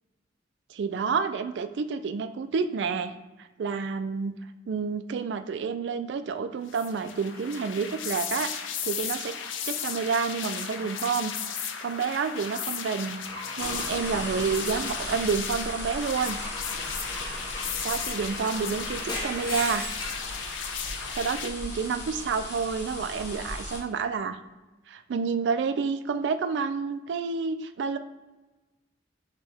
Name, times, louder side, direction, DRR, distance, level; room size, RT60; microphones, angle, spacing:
voice 1, 0.7-3.1 3.6-4.4 4.7-8.5 8.8-9.3 9.7-11.3 11.6-13.2 13.6-16.4 17.8-19.9 21.1-24.4 24.9-28.0, right 5 dB, 65° right, 10 dB, 0.3 m, -29 dB
sound 1, 6.7-21.5, left 7 dB, 90° left, 0.5 m, -35 dB
Car / Engine / Glass, 13.2-15.5 16.2-20.3, left 1 dB, 20° left, 0.8 m, -38 dB
sound 2, 13.6-23.8, left 2 dB, 65° left, 0.9 m, -37 dB
6.1 x 2.2 x 3.4 m, 1.1 s
head